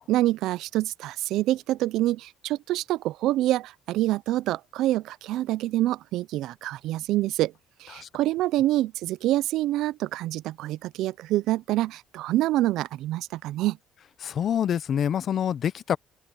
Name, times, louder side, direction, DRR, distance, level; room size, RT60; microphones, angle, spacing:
voice 1, 0.1-7.5 7.8-13.8, right 15 dB, 75° right, 0.5 m, -26 dB
voice 2, 14.2-16.0, left 9 dB, 55° left, 0.8 m, -26 dB
open air
supercardioid pair, 90°, 0 cm